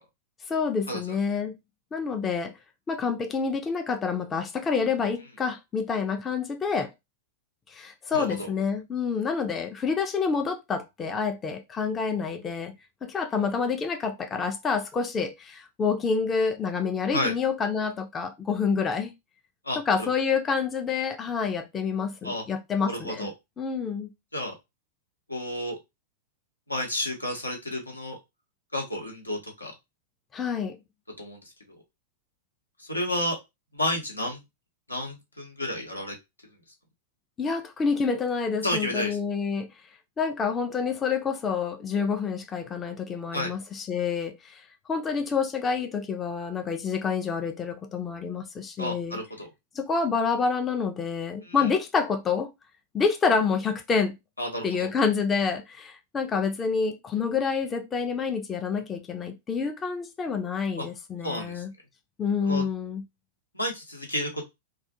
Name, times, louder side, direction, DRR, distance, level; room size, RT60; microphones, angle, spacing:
voice 1, 0.5-1.5 1.9-2.6 2.9-6.9 7.7-12.7 13.0-19.1 19.8-23.3 23.6-24.1 30.3-30.8 37.4-39.7 40.2-44.6 44.9-49.2 49.7-52.5 52.9-54.2 54.6-61.7 62.2-63.0, left 5 dB, 20° left, 0.4 m, -28 dB
voice 2, 8.1-8.5 17.1-17.3 19.6-20.1 22.2-22.4 22.9-23.3 24.3-24.5 25.3-25.8 26.7-28.2 28.7-29.7 31.2-31.4 32.8-33.4 33.7-34.4 34.9-36.2 38.6-39.2 43.3-43.5 48.8-49.5 51.4-51.7 54.4-54.9 60.8-60.9 61.2-61.6 62.4-62.6 63.5-64.5, left 1 dB, 90° left, 0.8 m, -31 dB
2.3 x 2.1 x 2.7 m
figure-of-eight pair, 95°, 0 cm